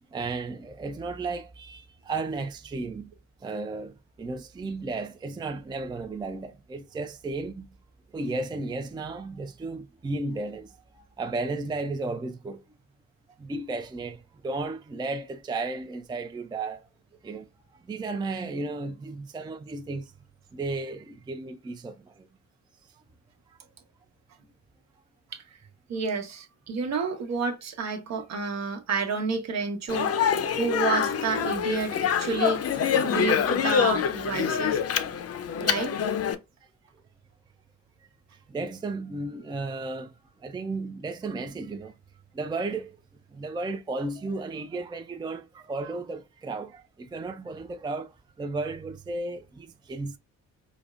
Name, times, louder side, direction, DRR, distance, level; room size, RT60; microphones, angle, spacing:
voice 1, 0.1-3.1 3.4-7.7 8.1-12.6 13.4-16.9 17.2-17.5 17.7-20.1 20.5-22.3 23.5-23.6 38.5-40.1 40.4-41.9 42.3-43.0 43.3-48.1 48.4-50.2, right 3 dB, 15° right, 0.4 m, -34 dB
voice 2, 25.9-30.3 30.6-34.8 35.6-35.9, right 4 dB, 60° right, 1.0 m, -30 dB
Speech, 29.9-36.4, left 8 dB, 55° left, 0.6 m, -26 dB
5.1 x 2.0 x 2.4 m
cardioid pair, 90°, 30 cm